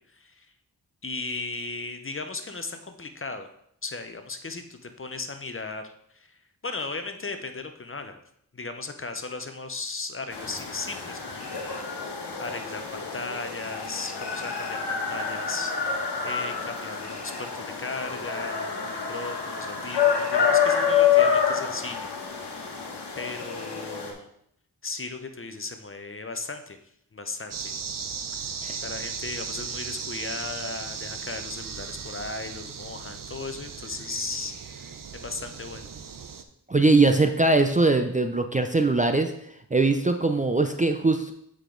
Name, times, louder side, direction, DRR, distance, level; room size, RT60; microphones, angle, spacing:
voice 1, 0.1-0.5 1.0-3.5 3.8-8.2 8.5-22.1 22.4-22.8 23.2-24.3 24.8-26.8 27.1-27.7 28.8-35.9, left 3 dB, 30° left, 7 dB, 0.8 m, -36 dB
sound 1, 10.3-24.1, left 7 dB, 85° left, 1.3 m, -27 dB
sound 2, 27.5-36.4, right 6 dB, 55° right, 0.7 m, -37 dB
voice 2, 36.7-39.3 39.7-41.3, right 3 dB, 20° right, 6 dB, 0.5 m, -21 dB
8.1 x 5.0 x 3.8 m, 0.73 s
cardioid pair, 60°, 39 cm